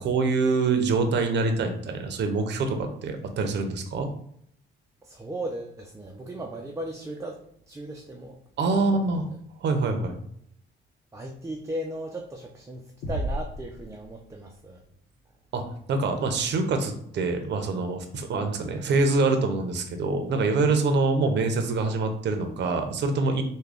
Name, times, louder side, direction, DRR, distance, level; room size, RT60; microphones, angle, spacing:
voice 1, 0.0-4.1 8.6-9.2 9.6-10.2 15.5-15.6 15.9-23.4, right 3 dB, 60° right, 6 dB, 0.6 m, -25 dB
voice 2, 5.0-7.4 7.7-8.4 8.7-9.0 11.1-14.8, right 1 dB, 15° right, 1 dB, 0.4 m, -36 dB
sound 1, 13.0-14.7, right 1 dB, 90° left, 0.8 m, -34 dB
3.6 x 2.2 x 3.4 m, 0.68 s
cardioid pair, 90°, 20 cm